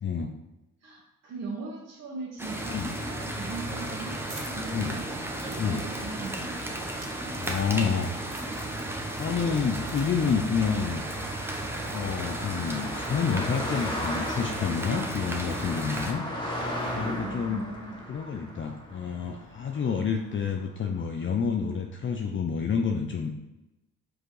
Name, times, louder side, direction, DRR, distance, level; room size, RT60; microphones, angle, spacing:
voice 1, 0.0-0.3 2.7-2.9 4.7-4.9 5.6-5.8 7.4-8.1 9.2-11.0 11.9-16.2 16.9-17.7 18.1-23.3, left 6 dB, 40° left, 3 dB, 0.7 m, -29 dB
voice 2, 0.8-4.2 4.5-5.1 5.4-7.1 17.2-18.0, right 4 dB, 55° right, -6 dB, 1.7 m, -40 dB
sound 1, 2.4-16.1, right 1 dB, 10° right, 1.1 m, -34 dB
sound 2, 4.2-8.0 8.3-8.8 9.1-10.1 10.3-10.4 11.1-11.4, right 2 dB, 35° right, 2.4 m, -48 dB
Car passing by, 9.1-20.6, equal, 15° left, 2.0 m, -37 dB
5.8 x 5.1 x 4.9 m, 0.96 s
cardioid pair, 90°, 30 cm